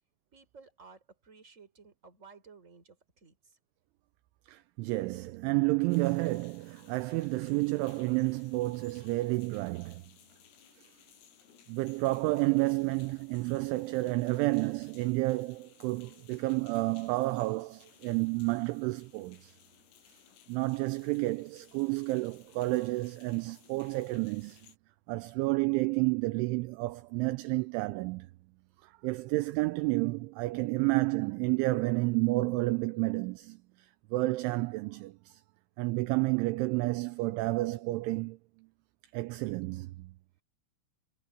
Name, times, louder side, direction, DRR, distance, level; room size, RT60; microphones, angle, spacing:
voice 1, 0.3-3.6, right 5 dB, 15° right, 4.1 m, -55 dB
voice 2, 4.5-10.0 11.7-19.6 20.5-24.6 25.1-28.3 28.8-35.4 35.8-38.7 39.1-40.1, right 22 dB, 85° right, 2.8 m, -30 dB
sound 1, 5.9-24.8, left 8 dB, 85° left, 7.2 m, -60 dB
omnidirectional pair, 6.0 m